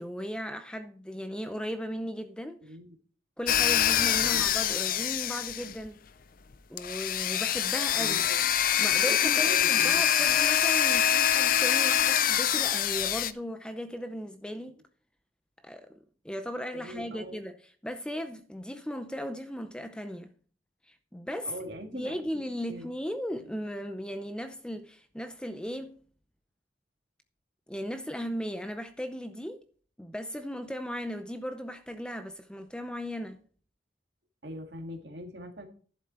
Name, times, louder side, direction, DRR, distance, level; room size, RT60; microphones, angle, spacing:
voice 1, 0.0-2.6 3.4-6.0 6.7-8.2 8.8-14.8 15.6-16.0 16.2-17.5 17.8-20.3 20.9-21.5 21.9-26.0 27.7-29.6 30.0-33.4, equal, 5° left, 0.6 m, -36 dB
voice 2, 2.6-3.0 4.2-4.4 8.0-8.5 9.0-10.4 16.7-17.4 21.4-22.9 34.4-35.7, equal, 60° right, 2.1 m, -42 dB
sound 1, 3.5-5.9 6.8-13.3, left 10 dB, 50° left, 0.5 m, -25 dB
11.0 x 7.7 x 4.3 m
head